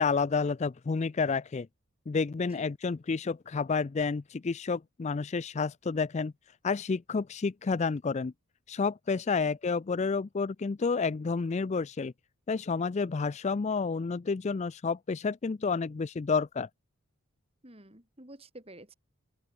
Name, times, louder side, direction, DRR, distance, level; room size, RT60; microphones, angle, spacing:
voice 1, 0.0-1.7 2.1-6.3 6.6-8.3 8.7-12.1 12.5-16.7, left 4 dB, 30° left, 0.3 m, -30 dB
voice 2, 17.6-18.9, right 1 dB, 25° right, 3.8 m, -50 dB
open air
head